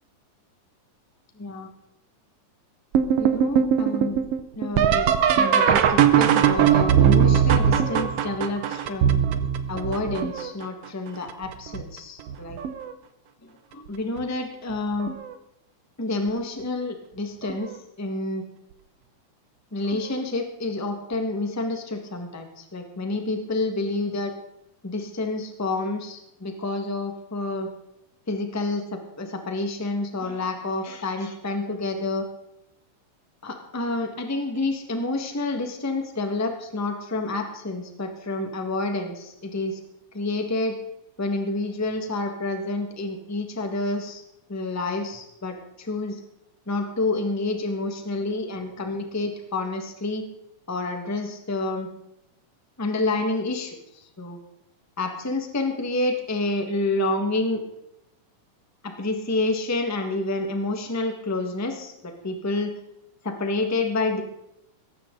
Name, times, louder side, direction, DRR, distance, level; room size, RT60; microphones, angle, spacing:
voice 1, 1.4-1.7 3.2-4.2 4.5-5.1 5.3-9.2 9.7-12.6 13.7-15.1 16.0-18.4 19.7-24.3 24.8-27.7 28.3-32.3 33.4-39.8 40.1-40.8 41.2-44.2 44.5-46.2 46.7-50.3 50.7-51.9 52.8-54.4 55.0-57.6 58.8-62.8 63.2-64.2, left 2 dB, 25° left, 5 dB, 0.3 m, -28 dB
sound 1, 2.9-10.6 11.3-11.8 12.3-12.9 14.2-14.3 15.0-15.3 17.5-17.6 19.9-20.0, right 8 dB, 70° right, 1.6 m, -20 dB
17.5 x 14.5 x 3.9 m, 0.81 s
omnidirectional pair, 3.5 m